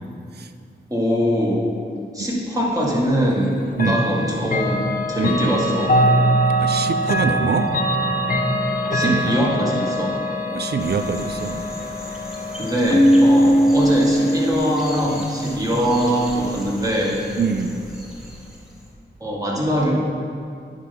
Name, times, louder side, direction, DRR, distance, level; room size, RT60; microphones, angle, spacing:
voice 1, 0.9-1.7 2.1-5.9 8.9-10.1 12.6-17.2 19.2-19.9, equal, 20° right, -4 dB, 1.8 m, -22 dB
Chime / Clock, 3.7-14.6, equal, 45° left, 0.7 m, -23 dB
voice 2, 6.6-7.7 8.9-9.4 10.5-11.7 13.4-13.5 17.4-17.8, right 5 dB, 60° right, 9 dB, 0.4 m, -24 dB
sound 1, 10.8-18.9, equal, ahead, 1.8 m, -38 dB
Keyboard (musical), 12.9-15.5, equal, 15° left, 0.4 m, -17 dB
9.8 x 5.5 x 3.6 m, 2.3 s
cardioid pair, 55°, 19 cm